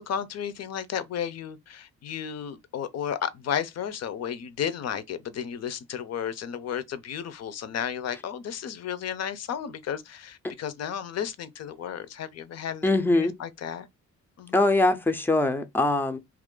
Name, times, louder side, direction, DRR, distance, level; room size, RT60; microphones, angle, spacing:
voice 1, 0.0-13.9 14.4-14.6, left 8 dB, 60° left, 0.5 m, -33 dB
voice 2, 12.8-13.3 14.5-16.2, left 2 dB, 5° left, 0.4 m, -22 dB
2.9 x 2.4 x 3.6 m
cardioid pair, 135°, 30 cm